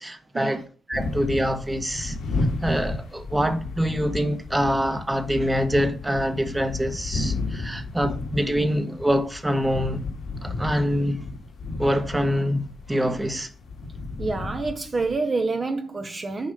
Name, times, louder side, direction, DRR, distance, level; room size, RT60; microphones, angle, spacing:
voice 1, 0.0-2.2 2.6-10.0 10.4-11.3 11.8-13.5, equal, 10° right, 1.0 m, -25 dB
sound 1, 0.9-15.2, left 3 dB, 85° left, 2.5 m, -32 dB
voice 2, 14.2-16.5, right 3 dB, 30° right, 0.8 m, -27 dB
6.7 x 4.9 x 5.4 m
cardioid pair, 90°, 0 cm